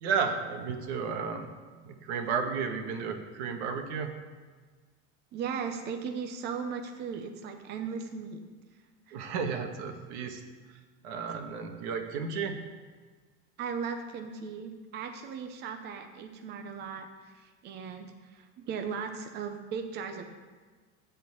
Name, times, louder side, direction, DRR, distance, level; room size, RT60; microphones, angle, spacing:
voice 1, 0.0-1.5 1.8-4.1 9.1-10.4 10.7-10.8 11.0-12.6, right 6 dB, 85° right, 5 dB, 1.5 m, -33 dB
voice 2, 5.3-8.4 9.1-9.3 13.6-20.3, right 6 dB, 30° right, 5 dB, 0.7 m, -37 dB
13.0 x 4.4 x 8.2 m, 1.5 s
cardioid pair, 175°, 33 cm